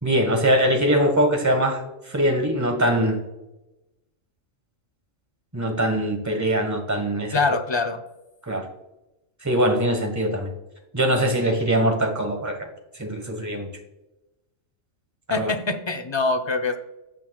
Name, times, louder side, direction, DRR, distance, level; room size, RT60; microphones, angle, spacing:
voice 1, 0.0-1.8 2.1-3.2 5.5-7.4 8.5-8.7 9.4-10.5 10.9-12.6 13.0-13.7 15.3-15.5, right 1 dB, 15° right, 3 dB, 1.3 m, -22 dB
voice 2, 7.3-8.0 15.3-16.8, left 3 dB, 30° left, 6 dB, 0.6 m, -24 dB
15.5 x 6.5 x 2.3 m, 0.98 s
omnidirectional pair, 1.3 m